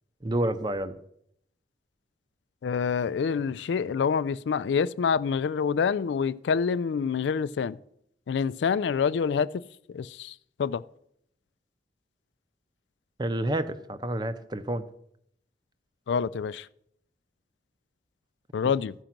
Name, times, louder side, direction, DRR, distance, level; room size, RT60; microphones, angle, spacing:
voice 1, 0.2-1.0 13.2-14.8, right 1 dB, 25° right, 0.6 m, -29 dB
voice 2, 2.6-7.8 8.3-9.6 9.9-10.8 16.1-16.7 18.5-18.9, left 6 dB, 80° left, 0.3 m, -27 dB
14.0 x 5.1 x 5.9 m
head